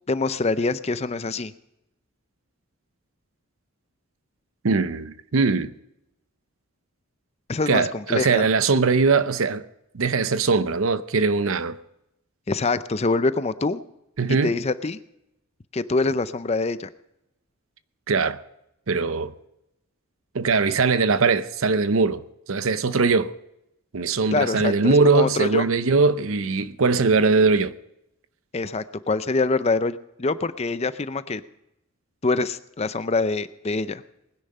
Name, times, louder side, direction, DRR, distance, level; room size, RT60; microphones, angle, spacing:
voice 1, 0.1-1.5 7.5-8.5 12.5-13.8 14.4-15.0 15.7-16.9 24.3-25.6 28.5-31.4 32.2-34.0, left 3 dB, 30° left, 0.5 m, -25 dB
voice 2, 4.6-5.7 7.7-9.6 9.9-11.8 14.2-14.5 18.1-18.4 18.9-19.3 20.3-22.2 22.5-23.3 23.9-27.7, right 4 dB, 65° right, 0.7 m, -21 dB
20.0 x 10.5 x 5.5 m
head